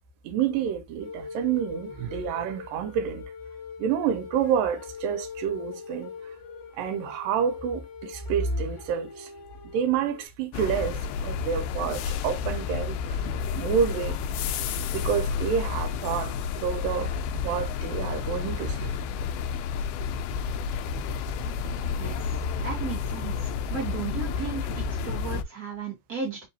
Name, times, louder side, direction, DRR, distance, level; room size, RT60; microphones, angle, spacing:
voice 1, 0.3-3.2 3.8-6.1 6.8-9.1 9.7-13.0 13.6-14.2 14.9-16.3 16.6-18.9, right 7 dB, 90° right, 2.4 m, -28 dB
sound 1, 1.0-10.3, left 5 dB, 65° left, 1.5 m, -42 dB
sound 2, 10.5-25.4, left 6 dB, 85° left, 1.8 m, -30 dB
voice 2, 22.6-23.3 23.7-26.4, right 5 dB, 65° right, 0.9 m, -34 dB
5.1 x 2.9 x 2.8 m
omnidirectional pair, 4.1 m